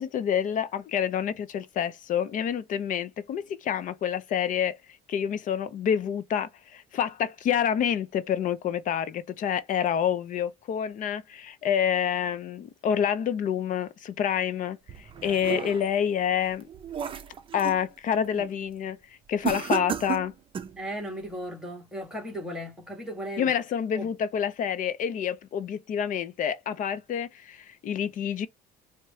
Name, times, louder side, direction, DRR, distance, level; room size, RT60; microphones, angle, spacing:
voice 1, 0.0-4.8 5.1-16.7 17.5-19.0 19.3-20.3 23.4-28.5, left 8 dB, 50° left, 0.5 m, -28 dB
sound 1, 14.9-16.0 16.5-17.9 18.2-18.6 19.4-20.8, right 8 dB, 30° right, 0.5 m, -33 dB
voice 2, 20.8-23.6 23.9-24.1, equal, 5° right, 1.5 m, -36 dB
4.6 x 2.1 x 2.8 m
cardioid pair, 125°, 18 cm